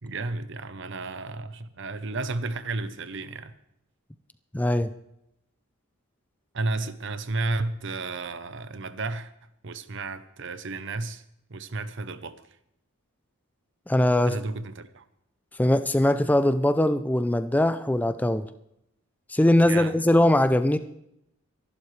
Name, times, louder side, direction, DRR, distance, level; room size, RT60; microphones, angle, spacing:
voice 1, 0.0-3.5 6.5-9.3 9.6-11.2 11.5-12.5 14.2-15.0 19.7-19.9, right 3 dB, 60° right, 0.8 m, -32 dB
voice 2, 4.5-4.9 13.9-14.3 15.6-18.5 19.3-20.8, left 1 dB, 10° left, 0.4 m, -21 dB
24.5 x 11.5 x 3.3 m
head